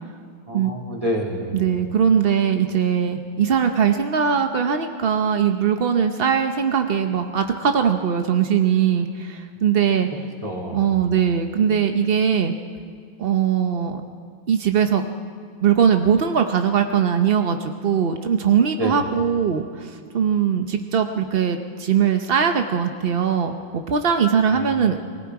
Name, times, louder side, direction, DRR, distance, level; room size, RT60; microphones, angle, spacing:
voice 1, 0.5-1.6 10.4-10.9 18.8-19.0 24.5-24.8, equal, 15° right, -2 dB, 3.4 m, -28 dB
voice 2, 1.5-10.1 10.7-12.5 13.2-14.0 14.5-15.0 15.6-23.6 23.9-25.1, right 7 dB, 60° right, 6 dB, 0.6 m, -20 dB
30.0 x 20.5 x 4.8 m, 2.3 s
omnidirectional pair, 2.1 m